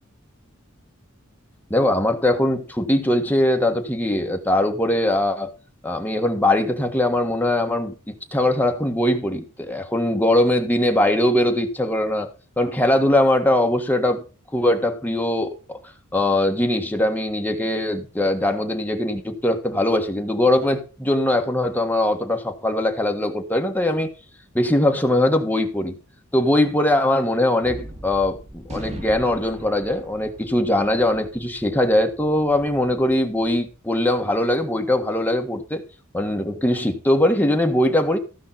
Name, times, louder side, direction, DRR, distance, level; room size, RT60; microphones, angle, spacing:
voice 1, 1.7-5.5 5.8-12.3 12.6-14.2 14.5-15.8 16.1-24.1 24.5-26.0 26.3-35.8 36.1-38.2, left 1 dB, 10° left, 1.5 m, -21 dB
Gunshot gunfire, 27.6-34.2, equal, 30° right, 2.6 m, -40 dB
15.0 x 5.5 x 5.8 m
head